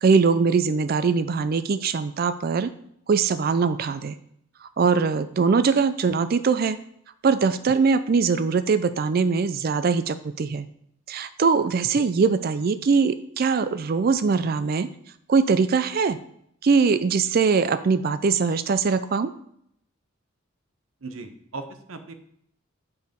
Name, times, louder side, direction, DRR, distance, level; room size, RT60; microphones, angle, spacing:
voice 1, 0.0-2.7 3.1-4.2 4.6-6.8 7.2-10.7 11.1-14.9 15.3-16.2 16.6-19.3, right 5 dB, 45° right, 13 dB, 0.4 m, -22 dB
voice 2, 21.0-22.1, right 3 dB, 90° right, 8 dB, 0.9 m, -38 dB
8.0 x 4.7 x 5.1 m, 0.70 s
head